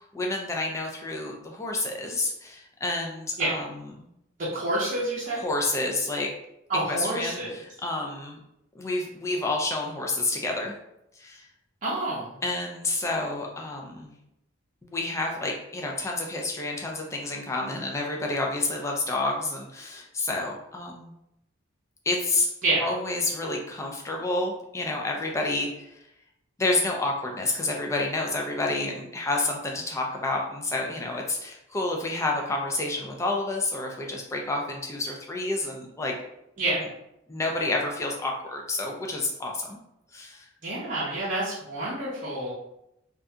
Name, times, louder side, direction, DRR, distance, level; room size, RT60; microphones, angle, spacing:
voice 1, 0.0-4.1 5.3-6.3 6.9-8.4 8.8-10.7 11.2-11.5 12.4-14.1 14.8-21.1 22.1-22.5 22.8-25.9 26.6-36.2 36.8-36.9 37.3-39.8 40.1-40.5, left 2 dB, 15° left, 0 dB, 0.3 m, -29 dB
voice 2, 4.5-5.4 6.7-7.5 11.8-12.3 22.6-22.9 36.6-36.8 40.6-42.5, right 2 dB, 40° right, -8 dB, 0.6 m, -28 dB
2.7 x 2.4 x 2.2 m, 0.82 s
head